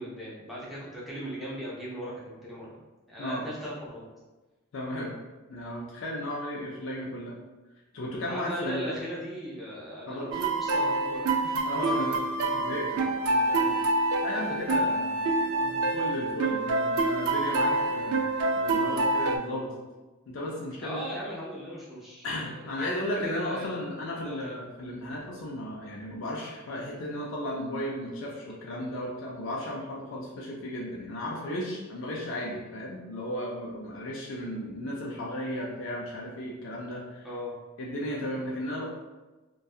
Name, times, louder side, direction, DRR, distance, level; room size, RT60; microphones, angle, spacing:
voice 1, 0.0-2.8 3.1-4.0 8.3-12.1 12.4-12.5 20.8-23.9 24.2-24.5 37.2-37.5, equal, ahead, -7 dB, 0.5 m, -38 dB
voice 2, 4.7-5.1 5.5-7.3 7.9-8.9 10.1-10.3 11.6-12.2 12.5-18.2 18.5-19.7 20.3-21.1 22.2-37.3 37.8-38.9, left 1 dB, 60° left, -3 dB, 0.4 m, -35 dB
sound 1, 10.3-19.4, right 2 dB, 90° right, 0.4 m, -27 dB
2.6 x 2.2 x 2.3 m, 1.2 s
head